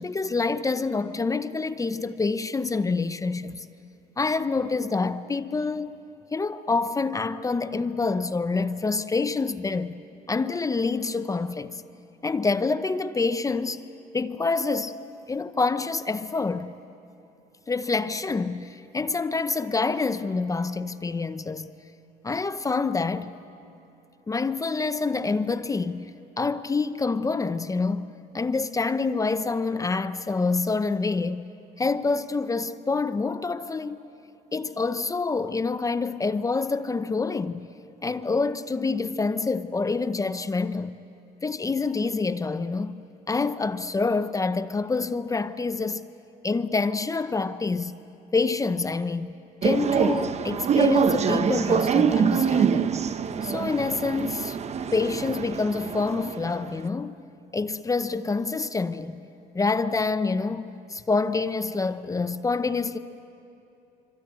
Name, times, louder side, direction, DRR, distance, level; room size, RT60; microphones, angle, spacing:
voice 1, 0.0-3.6 4.2-6.1 6.3-9.9 10.3-11.8 12.2-13.8 14.1-15.0 15.3-16.7 17.7-21.7 22.2-23.3 24.3-31.5 31.8-34.1 34.5-37.6 38.0-41.0 41.4-43.0 43.3-46.0 46.4-47.9 48.3-49.3 49.6-53.0 53.4-54.6 54.9-57.2 57.5-59.2 59.5-63.0, left 4 dB, 20° left, 0.7 m, -27 dB
sound 1, 49.6-56.8, right 7 dB, 40° right, 1.0 m, -25 dB
25.5 x 25.0 x 8.9 m
cardioid pair, 110°, 17 cm